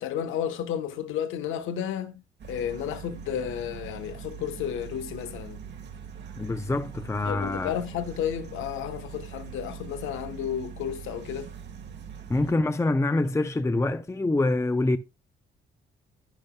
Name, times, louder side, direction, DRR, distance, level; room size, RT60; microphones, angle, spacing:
voice 1, 0.0-2.2 2.5-5.6 7.2-11.5, left 9 dB, 90° left, 1.2 m, -32 dB
sound 1, 2.4-12.5, right 7 dB, 60° right, 1.7 m, -42 dB
voice 2, 6.4-7.7 12.3-15.0, left 2 dB, 15° left, 0.6 m, -25 dB
10.5 x 10.5 x 2.3 m
cardioid pair, 90°, 20 cm